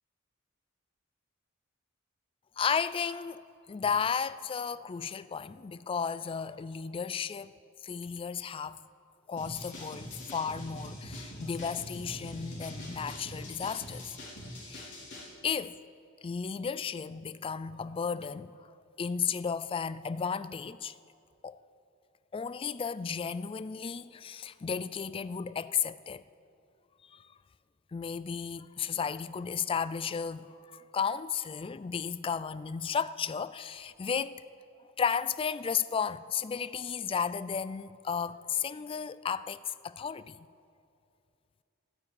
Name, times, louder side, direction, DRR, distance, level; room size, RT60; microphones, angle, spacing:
voice 1, 2.6-3.4 3.7-7.5 7.8-8.8 9.3-14.2 14.7-14.9 15.4-15.8 16.2-21.0 21.4-21.6 22.3-26.2 27.0-27.3 27.9-34.4 35.0-40.5, left 6 dB, 25° left, 0.3 m, -34 dB
sound 1, 9.4-15.3, equal, 60° left, 3.3 m, -43 dB
12.0 x 9.4 x 8.8 m
head